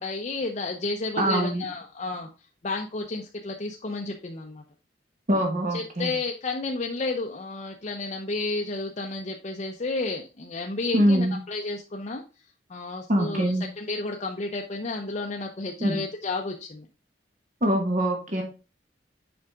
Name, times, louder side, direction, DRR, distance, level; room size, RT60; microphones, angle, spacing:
voice 1, 0.0-2.3 2.6-4.6 5.7-12.2 12.7-16.9, left 3 dB, 40° left, 2 dB, 0.7 m, -31 dB
voice 2, 1.2-1.7 5.3-6.1 10.9-11.4 13.1-13.7 15.8-16.0 17.6-18.4, equal, 45° right, 2 dB, 1.4 m, -23 dB
7.1 x 5.0 x 3.6 m, 0.31 s
head